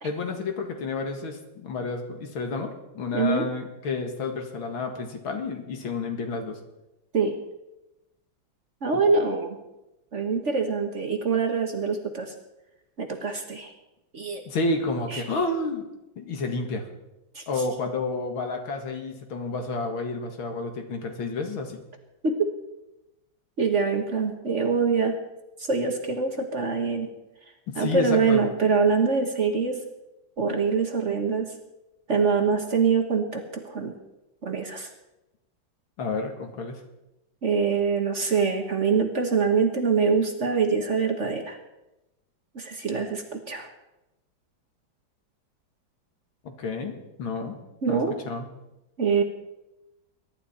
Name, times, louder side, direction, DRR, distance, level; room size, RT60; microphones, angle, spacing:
voice 1, 0.0-6.6 8.9-9.0 14.5-15.8 16.2-16.8 17.5-21.8 27.7-28.4 36.0-36.8 46.4-47.6 47.9-48.5, left 3 dB, 80° left, 5 dB, 2.6 m, -30 dB
voice 2, 3.1-3.4 7.1-7.3 8.8-9.5 10.1-12.3 13.0-13.7 14.1-14.4 15.1-15.2 17.3-17.4 22.2-22.5 23.6-25.1 25.7-27.1 27.8-29.7 30.4-31.5 32.1-33.9 34.4-34.9 37.4-41.6 42.5-43.7 47.8-48.1 49.0-49.2, right 5 dB, 40° right, 4 dB, 1.4 m, -24 dB
21.5 x 11.5 x 4.3 m, 0.95 s
omnidirectional pair, 2.2 m